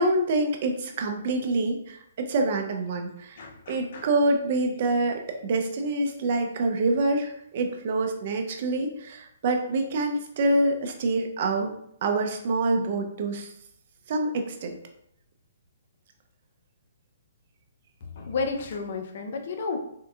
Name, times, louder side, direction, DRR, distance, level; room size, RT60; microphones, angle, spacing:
voice 1, 0.0-11.7 12.0-13.5 14.1-14.8, right 2 dB, 50° right, 4 dB, 0.6 m, -26 dB
voice 2, 3.4-4.1 18.0-19.8, left 4 dB, 55° left, 4 dB, 0.6 m, -32 dB
3.6 x 2.6 x 2.4 m, 0.71 s
hypercardioid pair, 150°, 0 cm